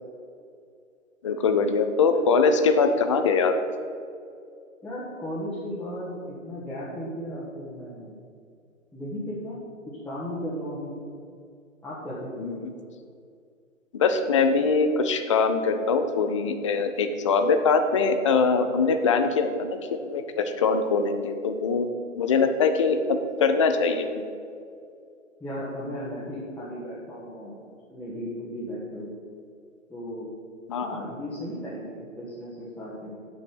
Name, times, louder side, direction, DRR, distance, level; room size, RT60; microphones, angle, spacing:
voice 1, 1.2-3.5 12.4-12.7 13.9-21.9 22.2-24.2 30.7-31.0, left 4 dB, 25° left, 7 dB, 0.4 m, -23 dB
voice 2, 4.8-8.1 8.9-9.6 10.0-10.9 11.8-12.5 25.4-27.6 27.9-29.1 29.9-30.3 30.8-33.2, equal, 5° left, -9 dB, 1.3 m, -35 dB
7.7 x 5.9 x 6.8 m, 2.3 s
figure-of-eight pair, 120°, 40 cm